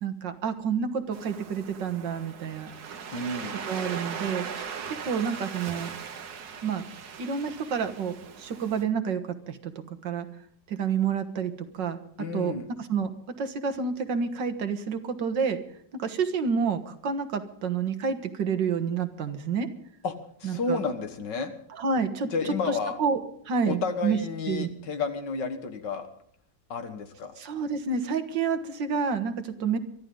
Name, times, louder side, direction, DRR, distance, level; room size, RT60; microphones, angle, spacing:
voice 1, 0.0-2.7 3.7-4.5 5.0-5.9 6.6-6.8 7.2-10.3 10.7-12.0 12.3-13.1 13.4-15.6 15.9-19.7 20.4-20.8 21.7-24.2 24.5-24.7 27.4-29.8, right 6 dB, 85° right, 9 dB, 2.0 m, -29 dB
Waves surf, 1.1-8.8, right 6 dB, 60° right, 1.7 m, -39 dB
voice 2, 3.1-3.5 12.2-12.7 20.0-20.2 20.4-21.5 22.3-23.0 23.7-26.1 26.7-27.3, left 4 dB, 75° left, 7 dB, 2.1 m, -31 dB
23.5 x 13.5 x 3.9 m, 0.65 s
omnidirectional pair, 1.9 m